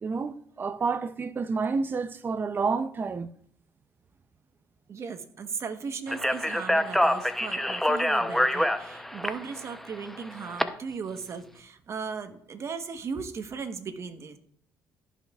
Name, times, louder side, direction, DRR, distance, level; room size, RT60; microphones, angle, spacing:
voice 1, 0.0-3.3, right 4 dB, 35° right, 0.5 m, -29 dB
voice 2, 4.9-14.4, right 5 dB, 50° right, 1.1 m, -37 dB
Speech, 6.1-10.6, left 1 dB, 5° left, 0.7 m, -26 dB
15.0 x 5.7 x 2.4 m
supercardioid pair, 75°, 6 cm